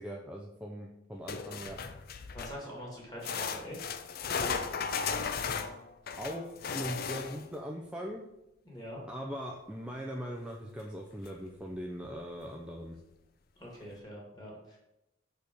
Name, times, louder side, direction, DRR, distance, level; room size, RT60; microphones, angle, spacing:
voice 1, 0.0-1.8 6.2-8.2 9.1-13.0, equal, 5° right, -1 dB, 0.5 m, -40 dB
sound 1, 1.3-2.7 3.2-7.6 10.8-10.9 11.3-11.4 12.1-12.2, left 5 dB, 45° left, 0.4 m, -36 dB
voice 2, 2.3-3.9 8.6-9.0 13.6-14.8, equal, 20° left, -3 dB, 2.2 m, -44 dB
6.5 x 4.8 x 5.2 m, 0.91 s
head